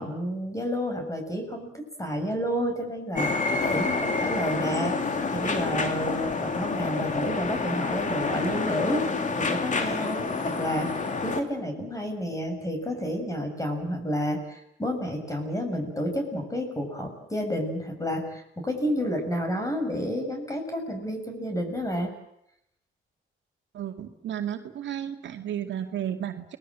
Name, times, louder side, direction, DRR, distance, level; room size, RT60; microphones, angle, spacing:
voice 1, 0.0-5.0 5.3-9.1 9.4-22.1 25.6-25.7, equal, 15° left, 5 dB, 7.3 m, -30 dB
sound 1, 3.1-11.4, left 4 dB, 40° left, 2.9 m, -28 dB
voice 2, 23.7-26.6, right 10 dB, 65° right, 5 dB, 2.4 m, -33 dB
29.5 x 20.5 x 7.7 m, 0.77 s
cardioid pair, 90°, 20 cm